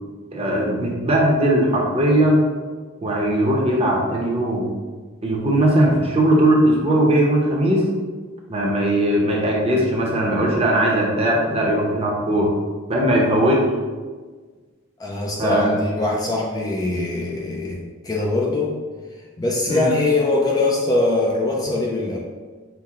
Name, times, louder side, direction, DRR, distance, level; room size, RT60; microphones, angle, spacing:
voice 1, 0.3-2.4 3.0-4.7 5.2-7.9 8.5-12.5 12.9-13.7 15.4-15.7 19.7-19.9, right 1 dB, 30° right, -2 dB, 0.7 m, -19 dB
voice 2, 15.0-18.7 19.4-22.2, left 2 dB, 20° left, -2 dB, 0.4 m, -22 dB
5.8 x 2.1 x 3.6 m, 1.4 s
head